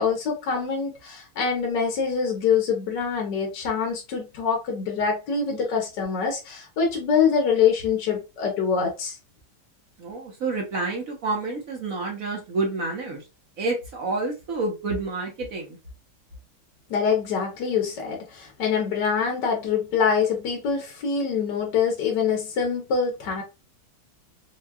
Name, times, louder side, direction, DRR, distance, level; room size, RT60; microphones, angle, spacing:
voice 1, 0.0-9.2 16.9-23.4, left 6 dB, 60° left, 1.3 m, -25 dB
voice 2, 10.0-13.2 13.6-15.8, right 3 dB, 55° right, 1.0 m, -29 dB
4.5 x 2.3 x 2.2 m
omnidirectional pair, 2.4 m